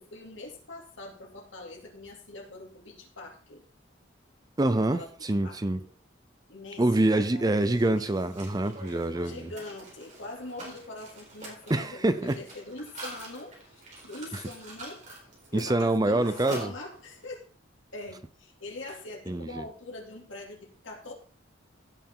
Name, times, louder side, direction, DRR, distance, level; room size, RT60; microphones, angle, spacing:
voice 1, 0.0-3.6 4.7-5.1 5.4-5.9 6.5-8.1 9.2-15.0 15.5-17.5 17.9-21.1, left 2 dB, 75° left, 2.7 m, -43 dB
voice 2, 4.6-5.8 6.8-9.5 11.7-12.4 14.3-14.4 15.5-16.7 19.3-19.6, right 2 dB, 20° right, 0.5 m, -26 dB
Mechanisms, 7.5-17.3, right 2 dB, 40° right, 4.3 m, -46 dB
15.5 x 6.8 x 3.8 m
head